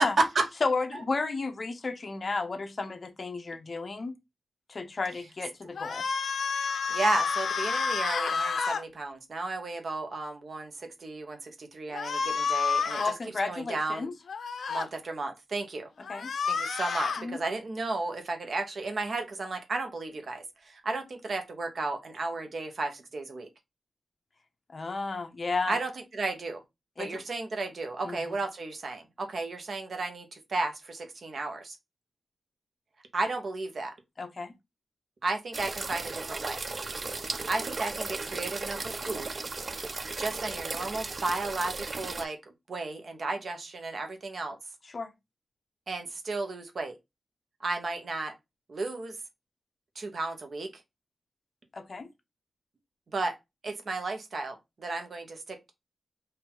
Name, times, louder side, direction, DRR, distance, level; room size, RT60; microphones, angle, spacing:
voice 1, 0.0-0.5 0.9-1.0 6.9-13.1 13.5-14.1 14.7-15.9 16.5-23.5 25.7-26.6 27.0-31.8 33.1-33.9 35.2-36.6 37.5-39.3 40.2-42.4 42.7-44.6 45.9-46.9 47.6-48.3 48.7-49.2 49.9-50.7 53.1-53.3 53.6-55.7, right 3 dB, 55° right, 1.0 m, -33 dB
voice 2, 0.6-4.1 4.7-6.0 13.0-14.1 16.1-16.3 17.2-17.4 24.7-25.8 27.0-27.1 28.0-28.4 34.2-34.5 44.9-45.1 51.7-52.1, left 3 dB, 40° left, 0.8 m, -32 dB
sound 1, 5.8-8.8 11.9-13.1 14.3-14.9 16.0-17.2, left 5 dB, 75° left, 0.5 m, -29 dB
sound 2, 35.5-42.3, right 3 dB, 40° right, 0.3 m, -36 dB
4.4 x 2.7 x 3.9 m
wide cardioid pair, 105°, 0 cm